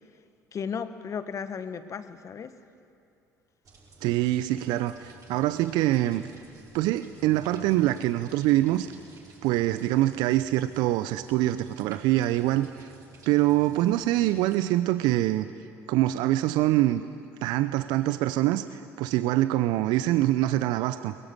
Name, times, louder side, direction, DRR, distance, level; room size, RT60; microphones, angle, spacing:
voice 1, 0.5-2.5, left 6 dB, 40° left, 11 dB, 1.5 m, -35 dB
sound 1, 3.6-14.6, right 3 dB, 45° right, 7.5 m, -53 dB
voice 2, 4.0-6.2 6.7-8.9 9.4-12.9 13.3-15.5 15.9-17.0 17.4-21.1, right 15 dB, 65° right, 12 dB, 0.7 m, -24 dB
23.0 x 21.0 x 9.8 m, 2.5 s
figure-of-eight pair, 55°, 8 cm